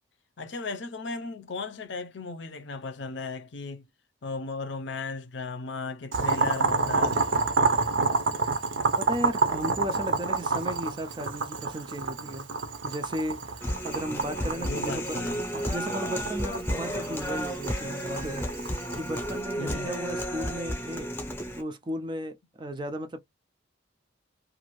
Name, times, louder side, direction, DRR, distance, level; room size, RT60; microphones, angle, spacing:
voice 1, 0.4-3.8 4.2-7.2 14.6-15.4 19.6-20.0, left 3 dB, 60° left, 0.6 m, -36 dB
Boiling, 6.1-19.4, right 4 dB, 65° right, 0.6 m, -29 dB
voice 2, 9.0-12.5 12.8-15.2 15.5-21.1 21.5-23.2, equal, 25° right, 0.4 m, -35 dB
Human voice, 13.6-21.6, equal, 10° left, 0.7 m, -32 dB
2.5 x 2.5 x 3.0 m
head